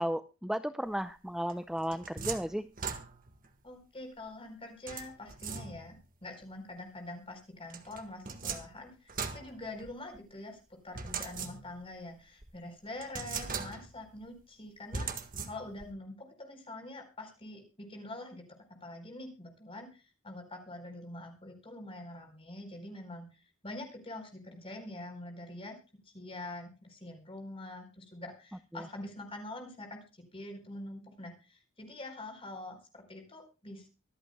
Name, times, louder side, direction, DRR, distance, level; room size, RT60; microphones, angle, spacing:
voice 1, 0.0-2.7 28.7-28.8, equal, ahead, 10 dB, 0.5 m, -34 dB
sound 1, 1.5-3.5 4.9-6.1 7.7-10.2 10.9-11.9 12.4-12.5 13.0-14.1 14.9-15.9, right 5 dB, 40° right, 1.6 m, -40 dB
voice 2, 3.6-15.1 15.4-18.4 18.8-25.7 26.0-33.9, left 2 dB, 25° left, 4 dB, 4.4 m, -45 dB
25.0 x 9.0 x 2.3 m, 0.32 s
head